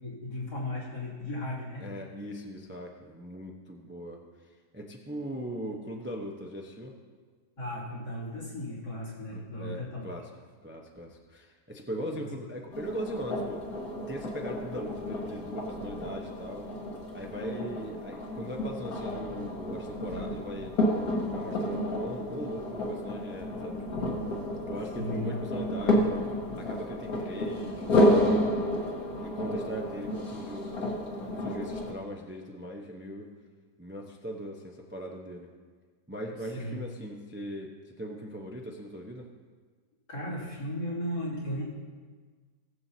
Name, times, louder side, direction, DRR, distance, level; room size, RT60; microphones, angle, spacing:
voice 1, 0.0-1.8 7.6-10.1 12.1-12.3 25.0-25.4 36.5-36.8 40.1-41.6, left 1 dB, 80° left, -6 dB, 3.4 m, -35 dB
voice 2, 1.8-7.0 9.3-10.3 10.6-13.6 14.1-16.7 17.1-20.7 21.3-24.1 24.7-26.2 26.5-28.4 29.2-33.3 33.8-35.5 36.1-39.3, equal, 10° right, 0 dB, 0.5 m, -40 dB
sound 1, 12.7-31.9, left 1 dB, 60° left, 1.9 m, -31 dB
19.0 x 7.7 x 2.8 m, 1.5 s
omnidirectional pair, 1.9 m